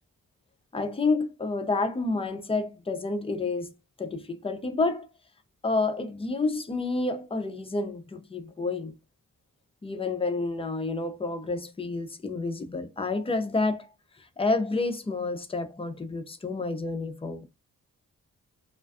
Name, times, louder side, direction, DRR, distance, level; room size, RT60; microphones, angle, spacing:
voice 1, 0.7-3.7 4.0-5.1 5.6-8.9 9.8-13.9 14.4-17.4, left 3 dB, 15° left, 0.4 m, -29 dB
2.4 x 2.2 x 2.2 m
wide cardioid pair, 85°, 34 cm